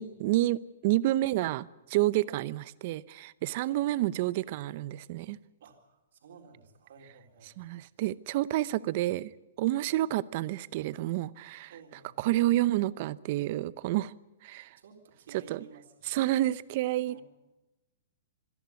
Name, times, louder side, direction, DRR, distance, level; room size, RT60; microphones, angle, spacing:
voice 1, 0.0-5.4 7.6-9.3 9.6-11.7 12.2-14.1 14.4-14.8 15.5-15.6 16.0-17.2, right 15 dB, 45° right, 0.7 m, -29 dB
voice 2, 5.6-7.6 9.7-10.0 11.7-12.3 14.8-16.2 17.0-17.2, right 6 dB, 70° right, 4.0 m, -53 dB
26.5 x 11.0 x 9.6 m
hypercardioid pair, 140°, 0 cm